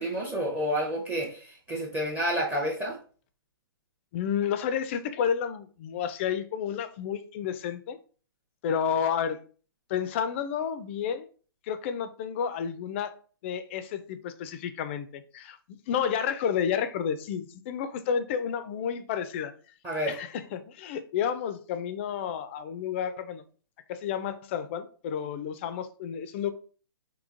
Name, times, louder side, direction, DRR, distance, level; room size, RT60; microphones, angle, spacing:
voice 1, 0.0-3.0 19.8-20.2, equal, 10° right, 0.6 m, -29 dB
voice 2, 4.1-8.0 8.6-9.4 9.9-11.3 11.6-13.1 13.4-15.6 15.9-19.5 20.1-23.4 23.9-26.5, left 8 dB, 30° left, 0.3 m, -31 dB
3.7 x 2.7 x 2.5 m
hypercardioid pair, 135°, 13 cm